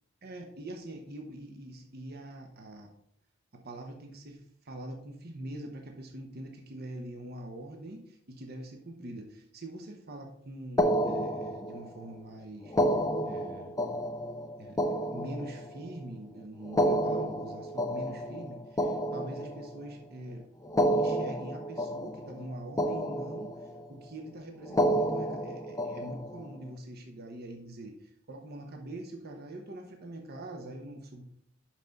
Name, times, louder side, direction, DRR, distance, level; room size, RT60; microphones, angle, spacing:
voice 1, 0.2-2.9 3.5-13.0 13.2-13.7 14.6-20.5 20.9-23.5 23.9-31.2, right 1 dB, 50° right, 3 dB, 1.0 m, -43 dB
sound 1, 10.8-12.0 12.7-16.0 16.6-19.9 20.6-22.5 22.8-23.8 24.6-26.5, equal, 15° left, 0.6 m, -30 dB
5.9 x 5.9 x 5.2 m, 0.69 s
head